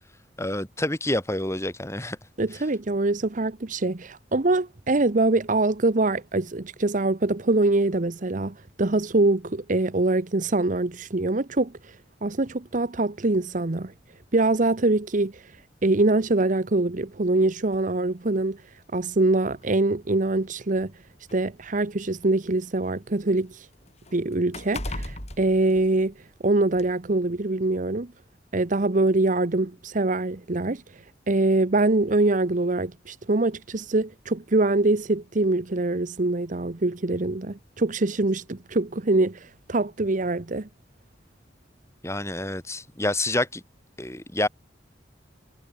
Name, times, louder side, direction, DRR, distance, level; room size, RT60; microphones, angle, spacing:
voice 1, 0.4-2.2 42.0-43.6 44.0-44.5, left 1 dB, 15° left, 6.0 m, -28 dB
voice 2, 2.4-12.0 12.2-13.9 14.3-15.4 15.8-18.6 18.9-20.9 21.3-23.7 24.1-26.1 26.4-28.1 28.5-30.8 31.3-40.7, right 2 dB, 45° right, 0.9 m, -24 dB
sound 1, 17.7-17.9 18.9-19.0 19.5-19.6 20.6-22.5 22.9-26.4 26.8-26.9, left 1 dB, 40° left, 7.6 m, -38 dB
head